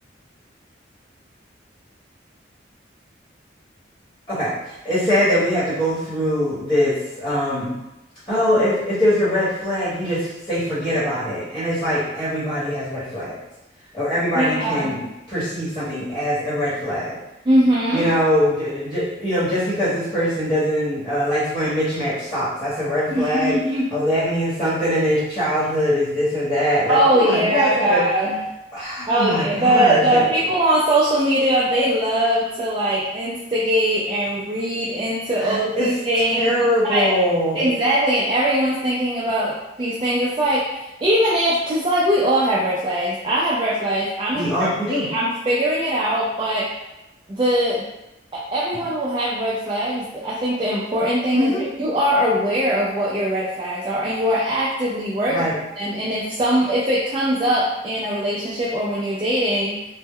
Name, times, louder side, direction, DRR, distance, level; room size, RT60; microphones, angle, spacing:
voice 1, 4.3-7.7 8.3-13.4 13.9-15.0 15.3-17.2 17.9-23.6 23.9-28.0 28.7-30.2 35.4-35.9 36.3-37.6 44.3-45.1 51.3-51.6 55.3-55.5, equal, 20° left, -12 dB, 1.0 m, -22 dB
voice 2, 14.3-14.9 17.4-18.1 23.1-23.9 26.9-28.4 29.1-36.5 36.8-37.1 37.5-46.7 47.3-47.8 48.3-51.5 51.8-55.5 55.8-59.8, right 1 dB, 25° right, -7 dB, 0.3 m, -21 dB
2.1 x 2.0 x 3.5 m, 0.95 s
head